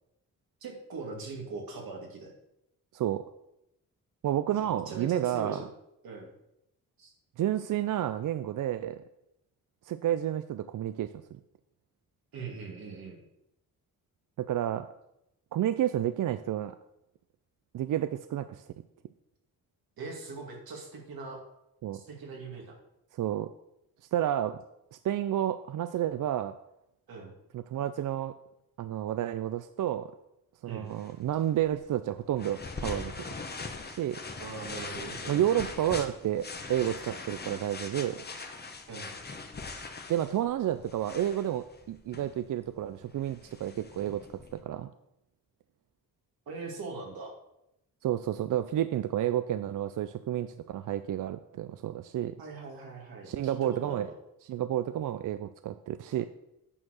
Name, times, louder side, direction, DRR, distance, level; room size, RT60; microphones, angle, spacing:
voice 1, 0.6-2.3 4.6-5.7 6.0-6.3 7.0-7.1 12.3-13.2 20.0-21.4 21.9-22.8 27.1-27.3 30.7-30.9 34.4-35.5 38.4-38.5 38.9-39.1 46.5-47.3 52.4-54.1, right 4 dB, 90° right, 0 dB, 2.3 m, -41 dB
voice 2, 4.2-5.6 7.4-9.0 9.8-11.1 14.4-14.9 15.5-16.8 17.7-18.6 21.8-22.0 23.2-23.5 24.1-24.6 24.9-26.5 27.5-28.3 28.8-30.1 30.6-33.1 33.9-34.2 35.3-38.2 40.1-44.3 44.5-44.9 48.0-52.4 53.3-54.1 54.5-56.3, right 11 dB, 65° right, 11 dB, 0.4 m, -30 dB
sound 1, 30.9-44.6, left 3 dB, 30° left, 0.9 m, -42 dB
8.7 x 4.6 x 6.4 m, 0.85 s
cardioid pair, 100°, 35 cm